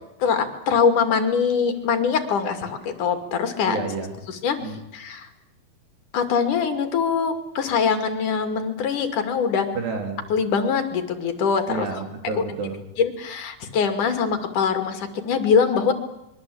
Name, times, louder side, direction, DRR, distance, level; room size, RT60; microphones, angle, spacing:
voice 1, 0.2-3.8 4.3-4.6 4.9-5.3 6.1-9.7 10.3-11.9 12.3-12.4 13.0-15.9, left 6 dB, 55° left, 7 dB, 3.7 m, -23 dB
voice 2, 3.6-4.1 4.6-4.8 9.8-10.2 11.7-12.8, right 5 dB, 80° right, 5 dB, 5.8 m, -30 dB
25.5 x 23.5 x 8.6 m, 0.89 s
omnidirectional pair, 4.7 m